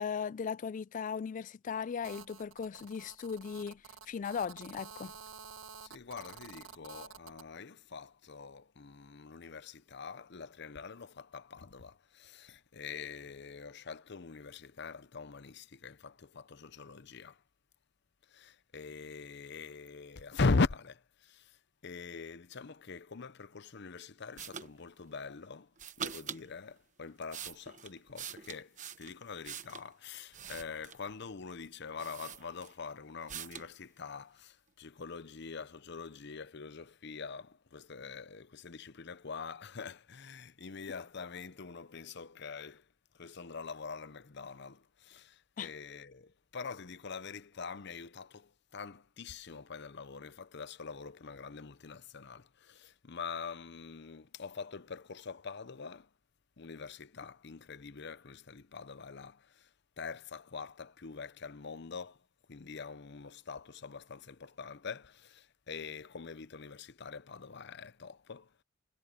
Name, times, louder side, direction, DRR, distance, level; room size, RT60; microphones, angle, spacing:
voice 1, 0.0-3.8 4.1-5.1 45.6-45.7, left 6 dB, 40° left, 0.3 m, -37 dB
Telephone, 2.0-7.5, right 6 dB, 80° right, 1.8 m, -50 dB
voice 2, 5.8-17.4 18.3-25.7 26.0-42.9 43.1-56.1 56.6-62.2 62.5-68.6, left 4 dB, 60° left, 0.8 m, -42 dB
sound 1, 24.4-24.7 25.8-26.4 27.0-29.9 30.3-31.1 31.6-31.7 32.0-32.9 33.3-33.7, right 8 dB, 40° right, 1.2 m, -44 dB
head